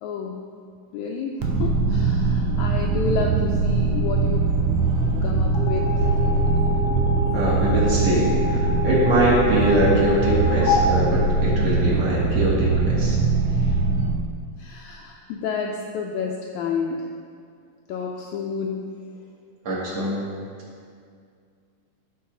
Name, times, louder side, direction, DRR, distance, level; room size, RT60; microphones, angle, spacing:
voice 1, 0.0-0.4 0.9-4.5 5.2-5.9 14.6-17.1 17.9-18.9, left 5 dB, 80° left, 1 dB, 1.7 m, -30 dB
sound 1, 1.4-14.1, right 3 dB, 85° right, 1.3 m, -22 dB
sound 2, 5.5-12.0, left 3 dB, 65° left, 1.5 m, -28 dB
voice 2, 7.3-13.2 13.6-13.7 19.6-20.3, right 1 dB, 50° right, -7 dB, 2.7 m, -23 dB
14.0 x 4.7 x 3.8 m, 2.2 s
omnidirectional pair, 3.8 m